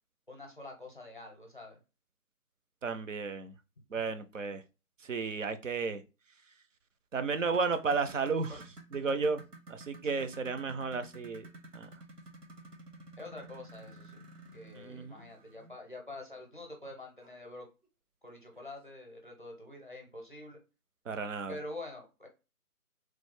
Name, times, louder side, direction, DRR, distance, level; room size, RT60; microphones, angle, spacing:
voice 1, 0.3-1.8 8.5-8.6 10.0-10.3 13.2-14.2 14.5-17.7 18.2-20.6 21.5-22.3, left 2 dB, 35° left, 2 dB, 0.6 m, -46 dB
voice 2, 2.8-3.5 3.9-4.6 5.1-6.0 7.1-8.6 8.9-9.4 9.7-11.4 11.7-11.9 14.7-15.2 21.1-21.6, right 4 dB, 55° right, 9 dB, 0.5 m, -33 dB
sound 1, 7.4-15.8 17.2-17.3 17.8-17.9 18.6-18.7, right 2 dB, 85° right, 1.1 m, -52 dB
3.1 x 2.0 x 3.4 m, 0.29 s
figure-of-eight pair, 165°, 46 cm